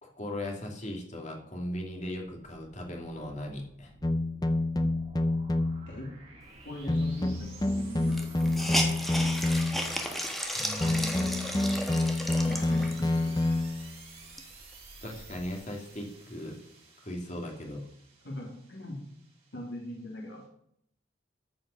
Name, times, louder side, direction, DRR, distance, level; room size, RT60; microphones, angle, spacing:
voice 1, 0.0-3.9 15.0-16.6 17.0-17.9, left 1 dB, 40° left, 1 dB, 2.7 m, -38 dB
sound 1, 2.6-20.4, right 3 dB, 30° right, 4.4 m, -51 dB
sound 2, 4.0-5.9 6.9-10.0 10.8-14.0, left 2 dB, 20° left, 0.7 m, -28 dB
voice 2, 6.6-9.1 10.5-11.4 12.5-13.4 18.2-19.0 19.5-20.4, left 1 dB, 70° left, -1 dB, 2.9 m, -40 dB
Hiss, 7.3-7.4 7.6-7.7 8.1-13.2 13.7-13.8 14.2-15.6, equal, ahead, 1.5 m, -34 dB
13.5 x 5.7 x 6.5 m, 0.70 s
head